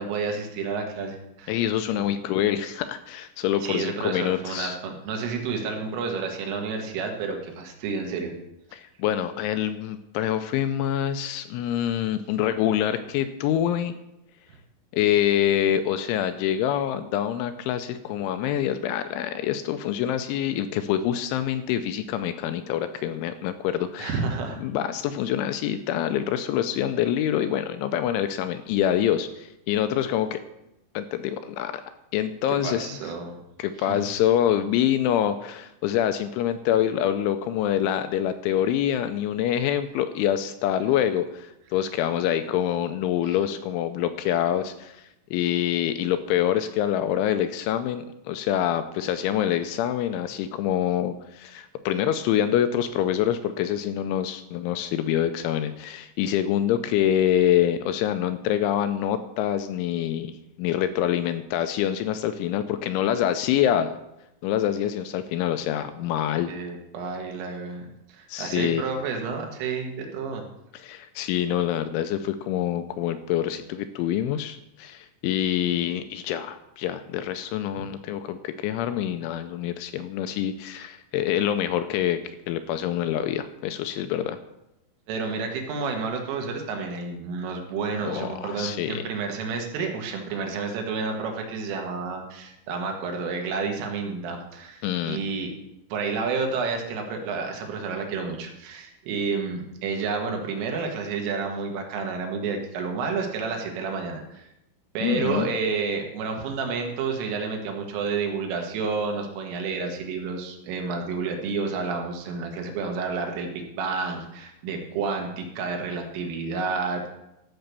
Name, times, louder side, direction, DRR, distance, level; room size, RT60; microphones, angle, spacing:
voice 1, 0.0-1.6 2.0-2.1 3.6-8.3 24.0-24.6 32.6-33.4 33.9-34.1 43.3-43.4 66.5-70.5 85.1-95.5 95.9-104.5 105.0-117.1, right 4 dB, 80° right, 2 dB, 4.1 m, -30 dB
voice 2, 1.5-4.8 8.7-13.9 14.9-24.2 24.6-30.4 30.9-31.8 32.1-33.0 33.6-45.0 45.3-60.3 60.6-63.9 64.4-66.5 68.3-68.8 70.7-82.2 82.5-84.4 88.0-89.0 94.8-95.2 105.0-105.5, left 10 dB, 80° left, 9 dB, 2.9 m, -26 dB
14.0 x 6.6 x 6.8 m, 0.87 s
omnidirectional pair, 5.8 m